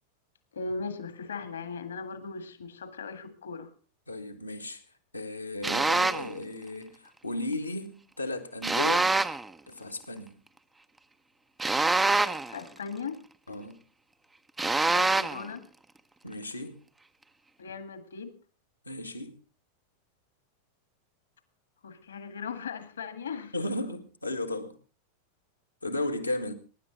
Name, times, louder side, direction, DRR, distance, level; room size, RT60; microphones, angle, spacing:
voice 1, 0.5-3.7 12.5-13.2 14.9-15.7 17.6-18.3 21.8-23.5, left 4 dB, 70° left, 1.8 m, -38 dB
voice 2, 4.1-4.8 5.1-9.1 9.7-10.4 13.5-13.8 16.2-16.8 18.9-19.4 23.5-24.7 25.8-26.5, left 1 dB, 85° left, 1.8 m, -35 dB
sound 1, 5.6-6.3 8.6-9.5 11.6-12.6 14.6-15.5, right 3 dB, 10° right, 0.7 m, -25 dB
23.5 x 11.0 x 3.8 m
figure-of-eight pair, 90°, 0 cm